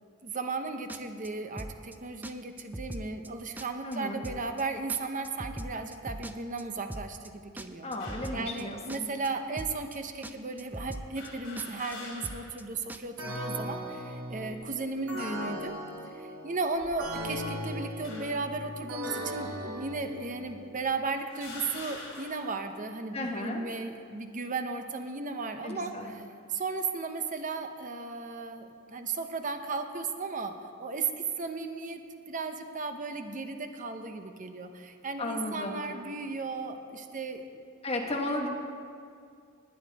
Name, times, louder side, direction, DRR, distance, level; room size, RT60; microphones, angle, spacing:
voice 1, 0.2-7.9 8.3-15.8 16.1-26.2 26.5-37.4, right 4 dB, 35° right, 6 dB, 0.8 m, -35 dB
sound 1, 0.9-1.3 1.6-2.0 2.2-2.3 2.6-3.3 3.6-4.0 4.2-4.6 4.9-6.6 6.9-7.3 7.6-8.6 8.9-9.3 9.6-10.0 10.2-10.3 10.6-11.3 11.6-12.0 12.2-12.6 12.9-13.0, right 1 dB, 10° right, 0.3 m, -40 dB
voice 2, 3.8-4.2 7.8-9.1 23.1-23.6 25.6-26.1 35.2-35.8 37.8-38.5, left 1 dB, 30° left, 1 dB, 1.4 m, -34 dB
sound 2, 8.0-8.4 9.2-9.3 11.1-12.6 13.0-13.1 14.3-14.7 15.4-15.7 16.6-17.4 18.0-18.5 19.4-19.5 20.4-20.5 21.3-22.6, left 2 dB, 60° left, 3.6 m, -46 dB
sound 3, 13.2-20.8, equal, 85° right, 2.2 m, -38 dB
19.5 x 8.9 x 4.1 m, 2.3 s
head